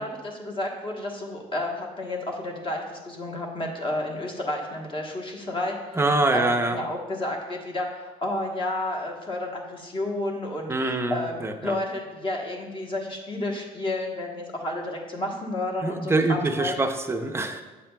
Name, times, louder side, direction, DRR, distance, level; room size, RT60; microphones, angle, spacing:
voice 1, 0.0-5.7 6.3-16.8, left 1 dB, 30° left, 0 dB, 1.1 m, -31 dB
voice 2, 5.9-6.8 10.7-11.8 15.8-17.6, right 2 dB, 15° right, 6 dB, 0.5 m, -25 dB
8.1 x 7.2 x 2.3 m, 1.2 s
cardioid pair, 110°, 17 cm